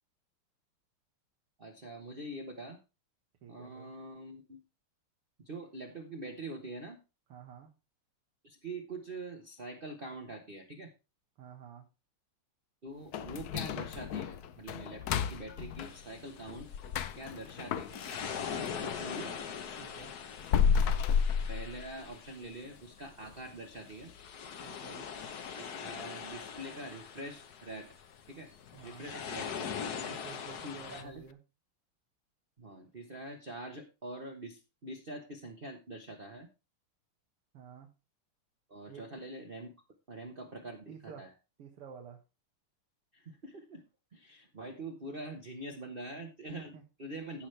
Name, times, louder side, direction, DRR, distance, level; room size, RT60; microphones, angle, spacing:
voice 1, 1.6-2.8 3.5-4.6 5.4-7.0 8.4-10.9 12.8-16.7 17.1-18.0 18.8-19.3 20.9-21.0 21.5-24.1 25.6-27.9 28.3-28.5 28.8-29.5 30.6-31.3 32.6-36.5 38.7-39.7 40.1-41.3 43.1-43.8 44.1-47.5, right 2 dB, 35° right, 3 dB, 1.0 m, -44 dB
voice 2, 3.4-3.9 7.3-7.7 11.4-11.8 18.5-18.9 19.8-20.1 24.6-25.1 28.7-29.1 29.9-31.4 37.5-37.9 38.9-39.0 40.5-41.3 41.6-42.2 46.7-46.8, right 7 dB, 85° right, 1 dB, 2.5 m, -51 dB
sound 1, 13.1-19.1 19.4-22.3 22.6-22.7 23.2-23.3 23.9-24.2 24.5-24.6 25.2-25.3, left 7 dB, 75° left, 0.9 m, -33 dB
sound 2, 15.8-31.0, left 7 dB, 55° left, 1.4 m, -43 dB
15.5 x 6.2 x 3.3 m, 0.29 s
omnidirectional pair, 2.4 m